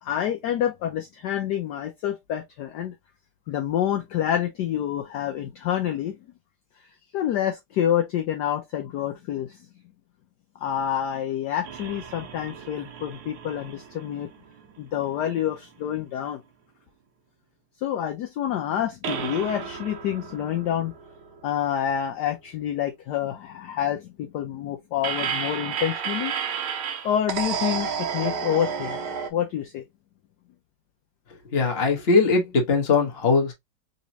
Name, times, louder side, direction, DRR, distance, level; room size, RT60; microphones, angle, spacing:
voice 1, 0.0-2.9 3.5-6.2 7.1-9.6 10.6-14.3 14.8-16.4 17.8-20.9 21.4-26.3 27.0-29.0 29.3-29.8, left 10 dB, 70° left, 1.0 m, -27 dB
sound 1, 11.6-15.1 15.5-15.6 19.0-22.2 25.0-29.3, right 7 dB, 90° right, 1.7 m, -32 dB
voice 2, 31.5-33.5, left 4 dB, 35° left, 1.2 m, -20 dB
4.1 x 3.0 x 2.7 m
omnidirectional pair, 2.3 m